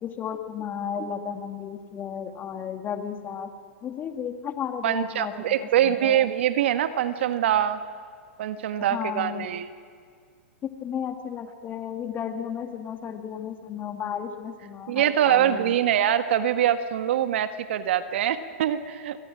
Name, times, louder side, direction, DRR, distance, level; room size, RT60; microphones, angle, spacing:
voice 1, 0.0-3.5 3.8-6.3 8.9-9.5 10.6-15.8, left 8 dB, 25° left, 6 dB, 2.2 m, -34 dB
voice 2, 4.8-7.8 8.4-9.7 14.9-19.2, right 10 dB, 60° right, 10 dB, 1.5 m, -24 dB
28.0 x 23.0 x 6.3 m, 2.1 s
hypercardioid pair, 115°, 7 cm